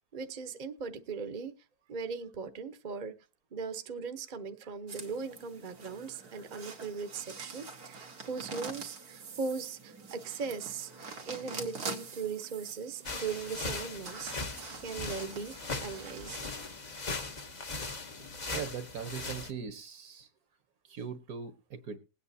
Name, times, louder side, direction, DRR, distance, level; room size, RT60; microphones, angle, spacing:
voice 1, 0.1-1.5 1.9-3.1 3.5-14.4 14.8-15.5 15.8-16.4, right 5 dB, 35° right, 9 dB, 0.9 m, -39 dB
sound 1, 4.9-16.7, right 4 dB, 90° right, 2.0 m, -45 dB
sound 2, 13.1-19.5, left 3 dB, 30° left, 1.0 m, -39 dB
voice 2, 18.5-20.3 20.9-22.0, right 6 dB, 70° right, 10 dB, 1.7 m, -40 dB
21.0 x 8.8 x 2.7 m, 0.29 s
omnidirectional pair, 1.6 m